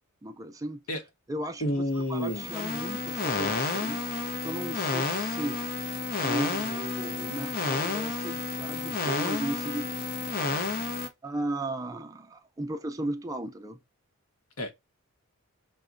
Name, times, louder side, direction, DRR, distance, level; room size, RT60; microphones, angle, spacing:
voice 1, 0.2-0.8 1.3-4.1 4.4-5.6 6.2-10.0 11.2-13.8, right 1 dB, 15° right, 0.4 m, -35 dB
voice 2, 1.6-2.6 14.6-14.7, left 1 dB, 75° left, 1.0 m, -30 dB
sound 1, 2.2-11.1, left 3 dB, 40° left, 0.6 m, -31 dB
5.8 x 2.2 x 2.5 m
head